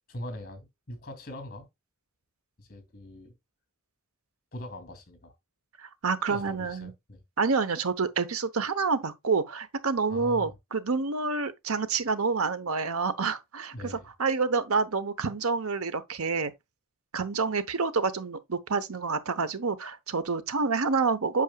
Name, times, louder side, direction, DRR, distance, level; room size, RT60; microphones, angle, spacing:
voice 1, 0.1-1.7 2.6-3.3 4.5-5.3 6.2-7.2 10.1-10.5 13.7-14.1, left 1 dB, 40° left, 2.7 m, -41 dB
voice 2, 5.8-6.9 7.4-16.5 17.1-21.4, right 4 dB, 75° right, 0.9 m, -28 dB
8.5 x 6.3 x 2.3 m
head